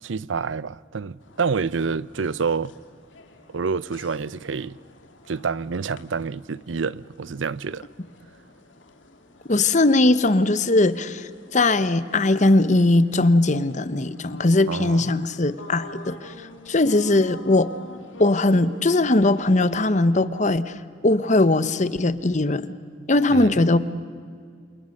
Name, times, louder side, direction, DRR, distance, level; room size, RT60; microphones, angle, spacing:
voice 1, 0.0-2.7 3.5-4.8 5.3-7.9 14.7-15.2 23.3-23.6, right 5 dB, 85° right, 0.6 m, -28 dB
sound 1, 1.2-20.0, left 1 dB, 85° left, 2.5 m, -46 dB
voice 2, 9.5-16.3 16.7-17.7 18.2-20.7 21.0-22.7 23.1-23.8, left 2 dB, 40° left, 0.9 m, -20 dB
28.5 x 28.0 x 6.6 m
head